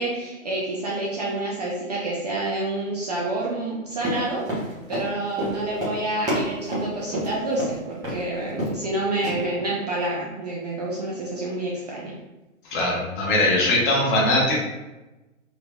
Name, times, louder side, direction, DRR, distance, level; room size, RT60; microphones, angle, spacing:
voice 1, 0.0-4.4 4.9-12.1, right 2 dB, 30° right, -4 dB, 0.4 m, -28 dB
Run, 3.9-7.7 8.0-8.2 8.5-8.9 9.2-9.3, equal, 10° right, 0.8 m, -29 dB
voice 2, 12.7-14.6, left 1 dB, 35° left, -4 dB, 1.1 m, -21 dB
3.3 x 3.0 x 2.2 m, 1.0 s
figure-of-eight pair, 120°, 41 cm